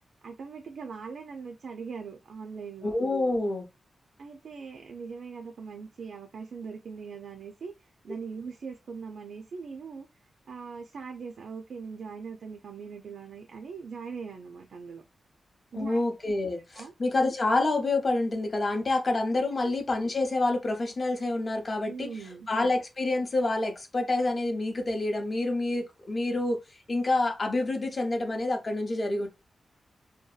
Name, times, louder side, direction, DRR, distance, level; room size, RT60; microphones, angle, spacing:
voice 1, 0.2-2.9 4.2-10.1 10.5-15.0 15.7-16.0 16.7-16.9 21.9-22.5, right 5 dB, 70° right, 0.3 m, -41 dB
voice 2, 2.8-3.7 15.7-22.1 22.5-26.6 26.9-29.3, left 2 dB, 35° left, 0.5 m, -27 dB
2.6 x 2.1 x 2.3 m
wide cardioid pair, 140°, 0 cm